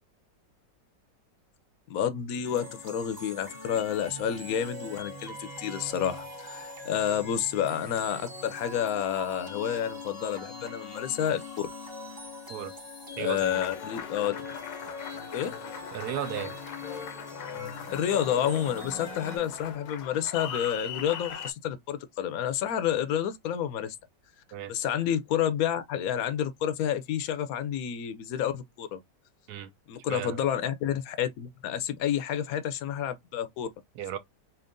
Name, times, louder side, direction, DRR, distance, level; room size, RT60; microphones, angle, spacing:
voice 1, 1.9-11.7 13.2-14.4 15.3-15.5 17.9-23.9 24.7-29.0 29.9-33.7, left 9 dB, 70° left, 0.9 m, -29 dB
sound 1, 2.4-19.4, left 2 dB, 15° right, 0.9 m, -42 dB
voice 2, 13.2-13.6 15.9-16.5 24.5-24.7 29.5-29.7 30.1-30.4 33.9-34.2, right 10 dB, 70° right, 1.1 m, -35 dB
Applause, 13.5-21.5, left 7 dB, 90° left, 1.4 m, -40 dB
4.4 x 2.8 x 2.5 m
omnidirectional pair, 1.9 m